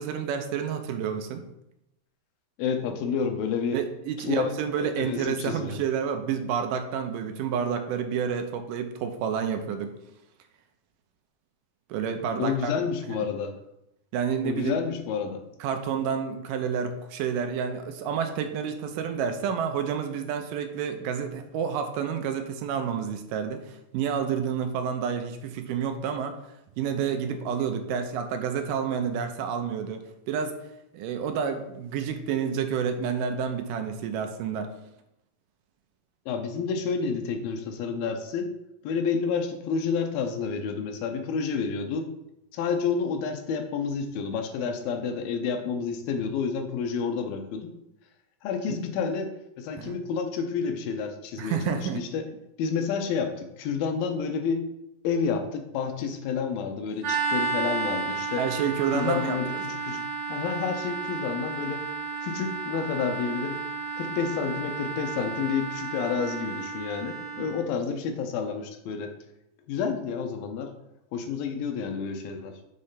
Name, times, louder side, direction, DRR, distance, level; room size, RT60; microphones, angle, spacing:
voice 1, 0.0-1.4 3.7-9.9 11.9-12.7 14.1-14.8 15.6-26.4 26.8-30.6 30.9-34.7 48.7-48.8 49.7-50.0 51.4-52.0 58.4-59.6 67.4-67.5, right 7 dB, 80° right, 6 dB, 2.2 m, -29 dB
voice 2, 2.6-3.8 4.3-5.8 12.4-13.5 14.4-15.4 36.3-38.5 38.8-42.1 42.5-47.7 48.4-49.3 49.6-52.2 52.6-54.6 55.0-58.4 58.9-60.0 60.3-61.8 62.2-63.6 64.0-69.1 69.7-70.7 71.1-72.5, left 6 dB, 90° left, 5 dB, 2.5 m, -29 dB
sound 1, 57.0-67.6, right 4 dB, 60° right, 2.7 m, -32 dB
6.7 x 3.2 x 5.6 m, 0.85 s
omnidirectional pair, 4.0 m